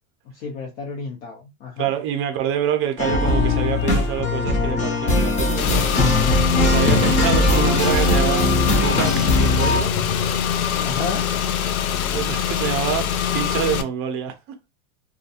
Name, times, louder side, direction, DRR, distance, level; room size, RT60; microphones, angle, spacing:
voice 1, 0.3-1.9 6.9-7.0 7.3-7.7 10.8-11.4, left 3 dB, 55° left, 0.9 m, -32 dB
voice 2, 1.8-5.9 6.6-9.9 12.1-14.6, right 9 dB, 30° right, 0.6 m, -26 dB
sound 1, 3.0-9.8, left 2 dB, 20° left, 0.4 m, -20 dB
Car / Engine, 5.6-13.8, left 8 dB, 85° left, 0.6 m, -23 dB
2.4 x 2.2 x 2.7 m
hypercardioid pair, 115°, 42 cm